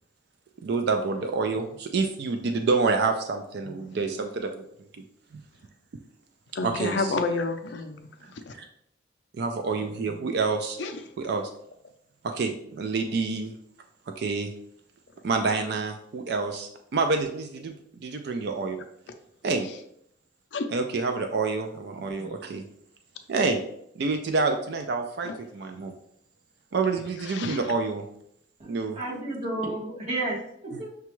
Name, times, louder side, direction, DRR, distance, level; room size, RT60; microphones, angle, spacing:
voice 1, 0.6-4.6 5.3-5.4 6.6-7.1 8.2-8.6 9.4-10.8 11.2-11.5 12.3-13.5 14.2-14.5 15.2-18.8 19.4-19.7 20.7-22.6 23.3-23.6 24.0-25.9 26.7-28.0 28.7-29.0 30.7-30.8, right 4 dB, 55° right, 0.3 m, -28 dB
voice 2, 6.6-8.6 9.8-10.3 10.8-11.0 20.5-20.7 22.2-22.3 25.2-25.4 27.2-27.7, left 3 dB, 65° left, 0.4 m, -31 dB
voice 3, 28.6-30.4 30.6-30.9, right 2 dB, 35° right, 1.3 m, -31 dB
5.9 x 2.3 x 3.0 m
head